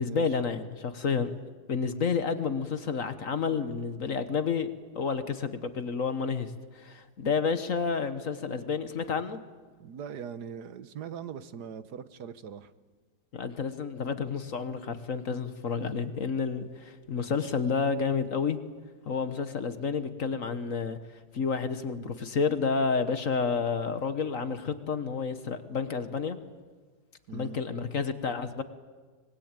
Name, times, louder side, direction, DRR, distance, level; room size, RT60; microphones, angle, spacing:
voice 1, 0.0-1.3 1.7-9.4 13.3-18.6 19.1-21.0 21.3-26.4 27.3-28.6, left 5 dB, 50° left, 10 dB, 1.5 m, -30 dB
voice 2, 9.8-12.7 27.3-27.6, right 7 dB, 70° right, 13 dB, 1.6 m, -41 dB
25.0 x 21.5 x 9.0 m, 1.4 s
omnidirectional pair, 1.8 m